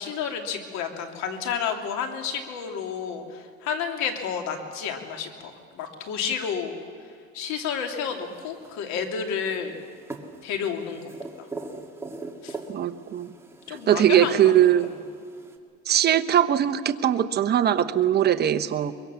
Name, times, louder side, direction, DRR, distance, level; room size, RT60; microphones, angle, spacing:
voice 1, 0.0-6.7 7.3-9.9 10.4-11.0 11.4-11.5 12.4-12.6 13.7-15.0, left 7 dB, 70° left, 4 dB, 2.9 m, -31 dB
sound 1, 8.0-15.6, right 3 dB, 10° right, 1.9 m, -42 dB
voice 2, 12.7-13.3 13.9-14.9 15.9-18.9, right 10 dB, 35° right, 8 dB, 1.0 m, -21 dB
23.5 x 22.5 x 7.0 m, 2.1 s
cardioid pair, 135°, 29 cm